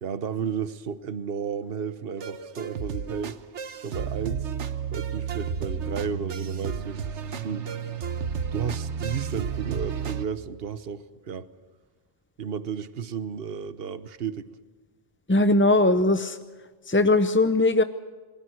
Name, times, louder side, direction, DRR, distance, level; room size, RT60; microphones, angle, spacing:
voice 1, 0.0-3.4 3.8-4.5 4.9-7.7 8.5-11.5 12.4-14.5, right 7 dB, 60° right, 13 dB, 1.2 m, -33 dB
sound 1, 2.2-10.3, right 6 dB, 90° right, 1.3 m, -32 dB
voice 2, 15.3-16.4 16.9-17.8, left 2 dB, 15° left, 10 dB, 0.5 m, -20 dB
28.0 x 20.5 x 6.4 m, 1.4 s
omnidirectional pair, 1.1 m